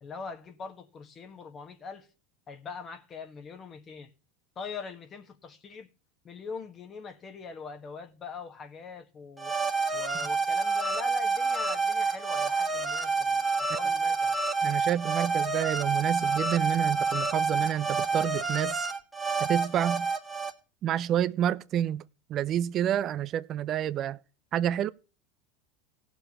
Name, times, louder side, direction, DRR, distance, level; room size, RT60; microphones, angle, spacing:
voice 1, 0.0-2.1 2.5-4.1 4.5-5.9 6.2-9.5 9.9-14.4, left 5 dB, 35° left, 1.5 m, -42 dB
sound 1, 9.4-20.5, right 4 dB, 5° right, 1.6 m, -28 dB
voice 2, 14.6-18.9 19.4-20.1 20.8-22.0 22.3-24.2 24.5-24.9, right 10 dB, 40° right, 0.5 m, -28 dB
18.5 x 6.8 x 3.0 m
hypercardioid pair, 85°, 0 cm